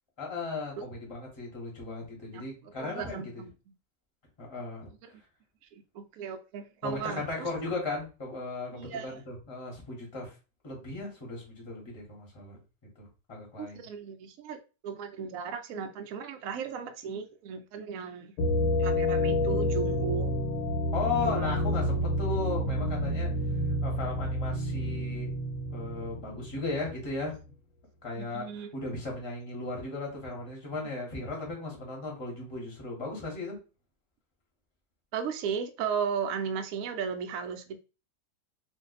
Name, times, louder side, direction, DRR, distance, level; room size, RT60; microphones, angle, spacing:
voice 1, 0.2-3.4 4.4-4.9 6.8-10.3 10.6-12.6 12.9-13.8 20.9-23.3 23.8-25.3 25.7-27.5 28.0-33.6, left 3 dB, 20° left, 1.1 m, -36 dB
voice 2, 2.3-3.5 5.0-5.1 5.7-7.5 8.7-9.2 13.6-18.3 18.8-20.3 21.2-21.6 28.2-28.7 35.1-37.8, right 6 dB, 70° right, 0.9 m, -36 dB
sound 1, 18.4-27.1, left 1 dB, 75° left, 1.3 m, -29 dB
2.6 x 2.5 x 3.9 m
omnidirectional pair, 1.8 m